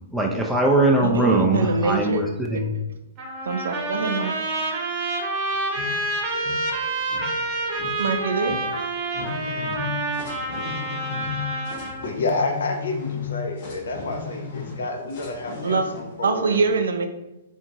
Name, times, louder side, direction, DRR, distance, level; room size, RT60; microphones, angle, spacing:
voice 1, 0.1-2.7, right 2 dB, ahead, -2 dB, 0.4 m, -21 dB
voice 2, 1.0-2.2 3.5-4.4 8.0-8.6 15.6-15.8 16.2-17.1, right 4 dB, 75° right, 7 dB, 0.3 m, -24 dB
Trumpet, 3.2-12.1, right 2 dB, 35° right, 0.9 m, -28 dB
sound 1, 5.5-16.2, left 5 dB, 50° left, 0.9 m, -35 dB
voice 3, 12.0-16.7, left 3 dB, 75° left, 3 dB, 0.6 m, -29 dB
2.7 x 2.6 x 2.6 m, 0.98 s
hypercardioid pair, 120°, 0 cm